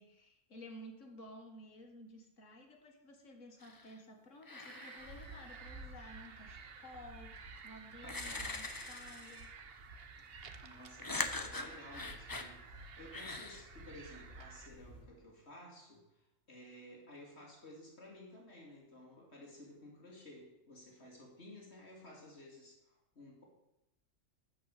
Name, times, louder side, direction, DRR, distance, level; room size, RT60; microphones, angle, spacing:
voice 1, 0.0-9.5, left 1 dB, 70° left, 2 dB, 2.2 m, -54 dB
sound 1, 3.6-4.0 4.4-5.8 7.4-7.5 8.0-9.6 11.0-12.5 13.1-13.6, left 2 dB, 20° left, 0.8 m, -42 dB
sound 2, 4.6-14.7, right 6 dB, 50° right, 1.0 m, -54 dB
sound 3, 5.0-15.0, right 1 dB, 75° right, 2.9 m, -55 dB
voice 2, 10.6-23.4, left 1 dB, 50° left, -1 dB, 2.8 m, -54 dB
12.5 x 5.4 x 8.3 m, 0.89 s
omnidirectional pair, 1.4 m